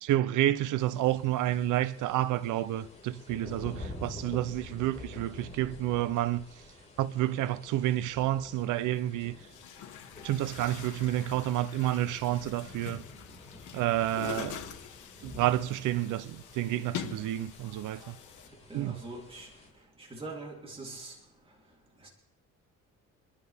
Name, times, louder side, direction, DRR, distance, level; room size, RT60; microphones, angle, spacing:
voice 1, 0.0-6.5 7.0-9.4 10.2-13.0 13.7-14.6 15.2-18.2 18.7-19.0, right 13 dB, 90° right, 0.7 m, -29 dB
sound 1, 0.8-19.7, left 1 dB, 20° left, 5.0 m, -49 dB
Chatter / Gurgling / Tap, 8.6-8.7 9.4-18.5, left 9 dB, 80° left, 1.4 m, -44 dB
voice 2, 18.7-19.5 20.0-21.1 22.0-22.1, right 2 dB, 20° right, 3.4 m, -42 dB
27.0 x 11.5 x 3.6 m
cardioid pair, 90°, 30 cm